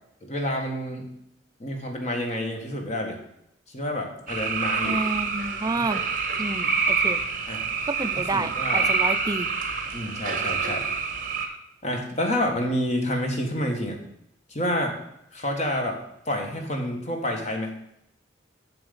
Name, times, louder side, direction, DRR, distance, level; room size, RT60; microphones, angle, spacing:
voice 1, 0.2-1.1 1.6-3.2 3.7-5.0 5.8-5.9 7.5-7.6 8.3-8.9 9.9-10.8 11.8-14.0 14.5-14.9 15.3-16.0 16.2-17.7, left 1 dB, 35° left, 2 dB, 1.6 m, -28 dB
sound 1, 4.3-11.5, right 5 dB, 45° right, 1.3 m, -27 dB
voice 2, 4.8-6.0 6.4-7.2 7.9-9.5, right 3 dB, 20° right, 11 dB, 0.3 m, -29 dB
7.8 x 6.9 x 5.3 m, 0.78 s
head